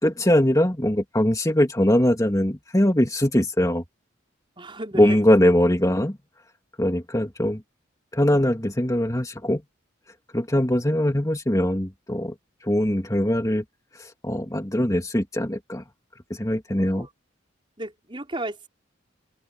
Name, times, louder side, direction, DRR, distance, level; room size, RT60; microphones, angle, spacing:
voice 1, 0.0-3.8 5.0-6.2 6.8-7.6 8.1-9.6 10.3-12.3 12.6-13.6 14.2-15.8 16.3-17.1, left 1 dB, 15° left, 2.7 m, -21 dB
voice 2, 4.6-5.2 16.8-17.1 17.8-18.7, right 1 dB, 25° right, 4.6 m, -34 dB
open air
head